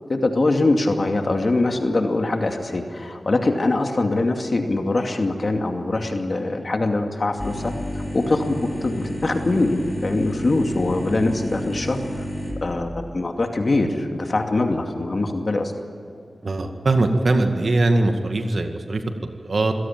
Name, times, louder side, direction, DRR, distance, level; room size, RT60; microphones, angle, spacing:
voice 1, 0.1-7.7 8.1-12.2 12.6-15.7, left 2 dB, 50° left, 4 dB, 2.4 m, -23 dB
sound 1, 7.4-12.5, equal, 10° left, 6.5 m, -30 dB
voice 2, 16.4-19.7, right 2 dB, 65° right, 5 dB, 2.1 m, -21 dB
26.0 x 17.5 x 9.0 m, 2.6 s
wide cardioid pair, 60°, 0 cm